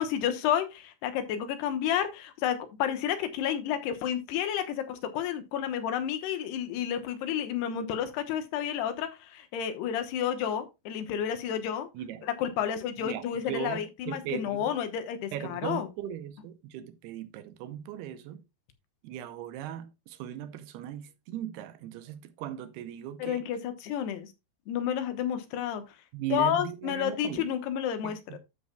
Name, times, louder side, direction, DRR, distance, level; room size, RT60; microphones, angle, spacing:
voice 1, 0.0-11.9 12.4-15.9 23.2-24.3 24.7-25.8 26.3-28.4, left 9 dB, 80° left, 3.2 m, -31 dB
voice 2, 11.9-12.3 13.0-14.7 15.3-18.4 19.0-23.4 26.1-27.5 28.0-28.4, right 11 dB, 80° right, 2.7 m, -38 dB
12.5 x 6.9 x 2.3 m
omnidirectional pair, 4.8 m